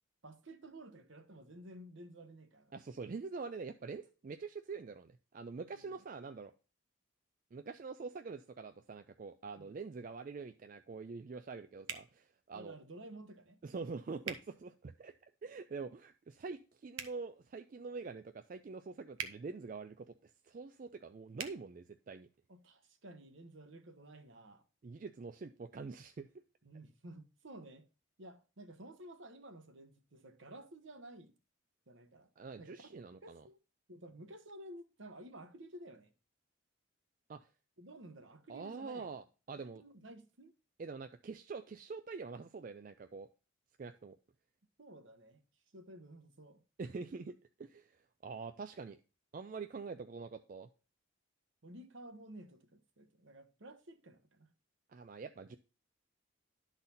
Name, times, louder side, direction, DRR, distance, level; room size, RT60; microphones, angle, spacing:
voice 1, 0.2-2.7 5.7-6.0 9.6-9.8 12.5-13.6 22.5-24.6 26.6-27.8 28.2-31.3 31.9-32.3 32.6-32.9 33.2-33.6 33.9-36.1 37.8-39.1 39.5-40.5 44.8-45.4 45.7-46.6 51.6-54.5, right 1 dB, 65° right, 1.0 m, -53 dB
voice 2, 2.7-6.5 7.5-12.8 13.6-15.1 15.4-22.3 24.8-26.3 32.4-33.4 37.3-37.5 38.5-39.8 40.8-43.3 43.8-44.2 46.8-48.0 48.2-49.0 49.3-50.7 54.9-55.6, right 4 dB, 40° right, 0.3 m, -45 dB
sound 1, 11.9-12.1 14.2-14.4 16.9-17.2 19.1-19.4 21.3-21.5, right 7 dB, 85° right, 1.0 m, -41 dB
11.5 x 4.0 x 4.1 m
head